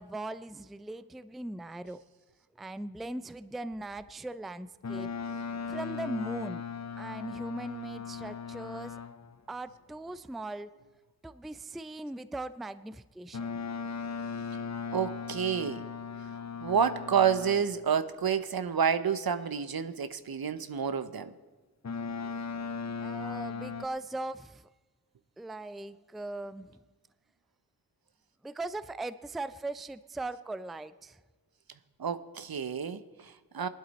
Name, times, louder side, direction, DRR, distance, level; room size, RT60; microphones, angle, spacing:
voice 1, 0.0-2.0 2.6-5.1 5.7-6.6 7.0-9.0 9.5-10.7 11.2-13.6 22.2-22.3 23.0-24.6 25.4-26.8 28.4-31.2, right 2 dB, ahead, 14 dB, 0.4 m, -39 dB
Boat Water vehicle, 4.8-9.4 13.3-17.9 21.8-23.8, left 5 dB, 45° left, 0.7 m, -38 dB
voice 2, 14.9-15.8 16.6-21.3 32.0-33.7, right 7 dB, 75° right, 12 dB, 0.8 m, -29 dB
20.0 x 11.5 x 4.1 m, 1.2 s
wide cardioid pair, 55°, 37 cm